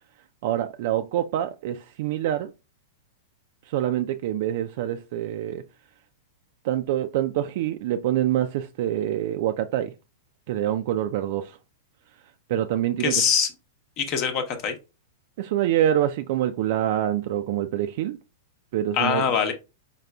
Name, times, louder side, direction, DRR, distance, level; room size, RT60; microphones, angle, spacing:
voice 1, 0.4-2.5 3.7-5.6 6.6-9.9 10.5-11.6 12.5-13.2 15.4-18.2 18.7-19.3, right 11 dB, 60° right, 0.3 m, -25 dB
voice 2, 13.0-13.5 14.0-14.8 18.9-19.5, left 7 dB, 45° left, 0.8 m, -23 dB
3.9 x 3.8 x 2.2 m
hypercardioid pair, 115°, 0 cm